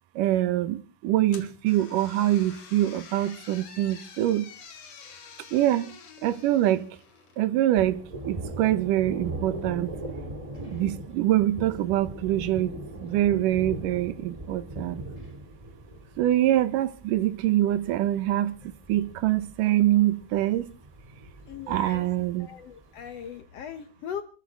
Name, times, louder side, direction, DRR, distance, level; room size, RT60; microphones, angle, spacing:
voice 1, 0.2-4.5 5.5-5.9 6.2-6.9 7.4-9.9 10.7-15.0 16.2-18.6 18.9-20.7 21.7-22.5, right 13 dB, 75° right, 2.4 m, -24 dB
sound 1, 1.3-7.4, left 6 dB, 50° left, 2.8 m, -48 dB
Thunder, 7.8-23.3, right 1 dB, 15° right, 1.8 m, -40 dB
voice 2, 21.5-22.1 22.4-24.2, left 8 dB, 70° left, 1.5 m, -39 dB
26.5 x 14.0 x 3.6 m
omnidirectional pair, 4.2 m